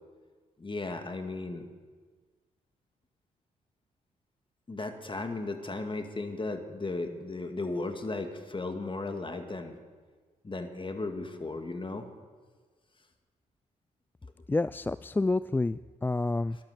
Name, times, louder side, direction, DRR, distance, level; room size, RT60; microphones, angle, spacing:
voice 1, 0.6-1.6 4.7-9.7 10.4-12.1, left 2 dB, 30° left, 6 dB, 2.1 m, -35 dB
voice 2, 14.5-16.6, left 2 dB, 10° left, 16 dB, 0.3 m, -29 dB
13.5 x 11.5 x 6.8 m, 1.5 s
hypercardioid pair, 40°, 18 cm